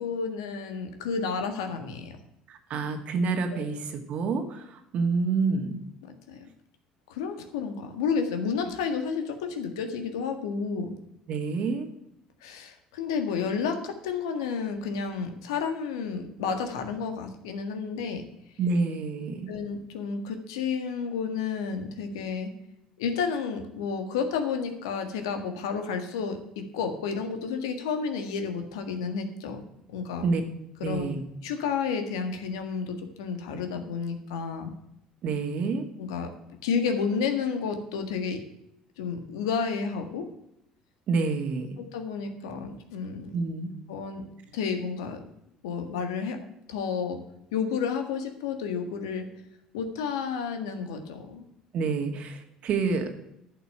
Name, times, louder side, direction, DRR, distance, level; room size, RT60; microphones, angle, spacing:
voice 1, 0.0-2.1 3.5-3.7 6.3-6.5 7.1-10.9 12.4-18.2 19.5-22.5 23.0-26.4 26.7-29.6 29.9-30.3 30.8-34.7 36.0-36.3 36.6-38.4 39.0-40.3 41.9-43.3 43.9-44.2 44.5-45.2 45.6-46.4 46.7-47.2 47.5-49.2 49.7-51.5, left 5 dB, 90° left, 6 dB, 1.7 m, -31 dB
voice 2, 2.5-5.8 11.3-11.9 18.6-19.5 30.2-30.4 30.8-31.2 35.2-35.8 41.1-41.7 43.3-43.7 51.7-53.1, right 4 dB, 55° right, 6 dB, 2.0 m, -28 dB
11.0 x 6.0 x 8.7 m, 0.81 s
supercardioid pair, 80°, 3 cm